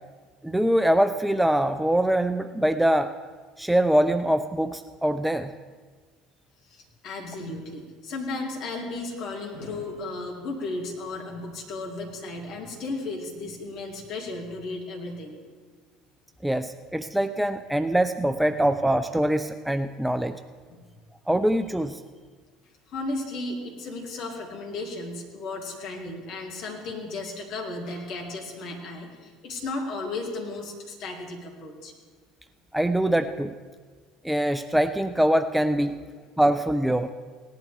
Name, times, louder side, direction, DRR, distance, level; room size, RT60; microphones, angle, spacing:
voice 1, 0.4-3.1 3.6-5.5 16.4-20.4 21.3-21.9 32.7-33.5 34.2-36.0 36.4-37.1, right 1 dB, 5° right, 10 dB, 0.4 m, -23 dB
voice 2, 6.6-15.4 20.7-20.9 22.9-31.9 35.9-36.0, left 2 dB, 50° left, -1 dB, 2.7 m, -35 dB
18.0 x 11.0 x 3.5 m, 1.5 s
figure-of-eight pair, 60°, 0 cm